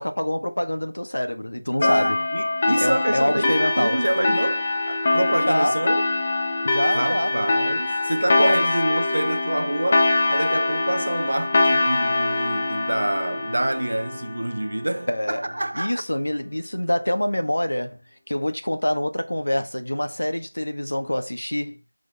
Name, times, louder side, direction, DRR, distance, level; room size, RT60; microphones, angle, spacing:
voice 1, 0.0-2.2 2.6-4.0 5.3-5.8 6.6-7.3 8.4-8.6 15.1-15.4 15.7-18.0 18.3-21.8, left 1 dB, 65° left, 1.6 m, -25 dB
sound 1, 1.8-14.9, left 2 dB, 20° left, 0.8 m, -23 dB
voice 2, 1.8-6.0 6.9-16.0, right 1 dB, 50° right, 0.7 m, -27 dB
6.5 x 5.1 x 3.5 m
figure-of-eight pair, 170°, 0 cm